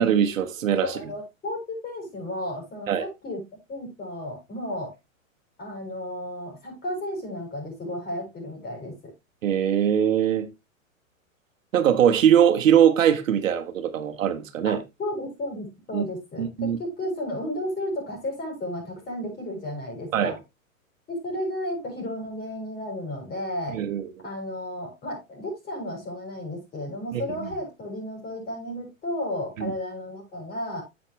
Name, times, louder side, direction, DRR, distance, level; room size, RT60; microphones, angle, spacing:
voice 1, 0.0-0.9 2.9-3.1 9.4-10.5 11.7-14.8 15.9-16.0 16.4-16.8 20.1-20.3 23.7-24.0 27.1-27.2 29.6-29.7, right 9 dB, 70° right, 1.4 m, -21 dB
voice 2, 0.8-3.4 3.7-4.9 5.6-9.1 14.7-20.4 21.1-23.8 24.2-30.8, left 1 dB, 20° left, 6.3 m, -33 dB
10.0 x 7.6 x 3.1 m
hypercardioid pair, 120°, 41 cm